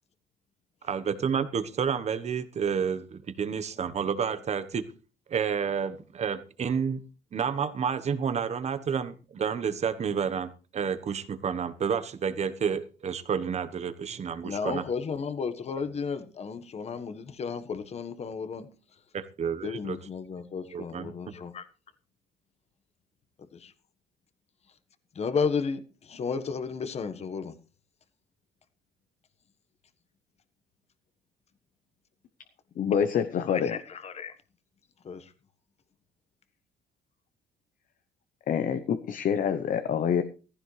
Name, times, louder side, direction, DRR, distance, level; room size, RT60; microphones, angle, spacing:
voice 1, 0.8-4.8 5.3-7.0 7.3-14.8 19.1-20.0 20.7-21.1, right 7 dB, 40° right, 1.2 m, -30 dB
voice 2, 14.4-18.7 19.6-21.7 23.5-23.7 25.1-27.5 33.5-34.4 35.0-35.3, left 5 dB, 40° left, 1.4 m, -33 dB
voice 3, 32.8-33.8 38.5-40.2, left 8 dB, 55° left, 0.9 m, -26 dB
15.0 x 15.0 x 3.3 m
cardioid pair, 110°, 17 cm